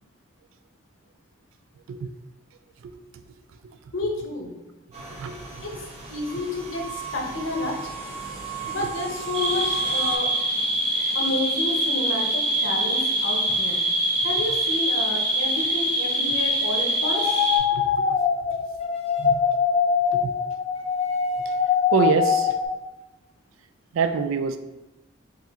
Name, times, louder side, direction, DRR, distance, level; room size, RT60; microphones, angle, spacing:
voice 1, 2.8-3.2 3.6-3.8 5.2-5.6 8.8-8.9 17.7-18.2 19.2-19.4 20.1-20.3 21.5-21.6 21.9-22.6 23.9-24.6, right 6 dB, 85° right, 10 dB, 0.3 m, -26 dB
voice 2, 3.9-4.5 5.6-7.9 8.7-10.3 11.1-17.4, left 2 dB, 80° left, 0 dB, 0.8 m, -30 dB
sound 1, 4.9-10.2, right 5 dB, 30° right, 0.6 m, -36 dB
sound 2, 9.3-17.6, right 1 dB, 60° right, 1.0 m, -24 dB
sound 3, 17.0-22.6, left 7 dB, 30° left, 0.5 m, -23 dB
4.2 x 2.4 x 3.5 m, 1.0 s
head